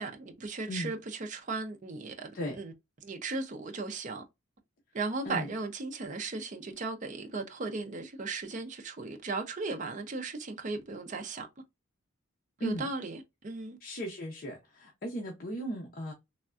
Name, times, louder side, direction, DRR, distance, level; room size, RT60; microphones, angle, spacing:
voice 1, 0.0-2.7 3.0-4.2 4.9-11.5 12.6-13.8, right 3 dB, 40° right, 0.5 m, -36 dB
voice 2, 13.8-16.1, equal, 45° left, 0.6 m, -36 dB
3.4 x 2.2 x 2.4 m
head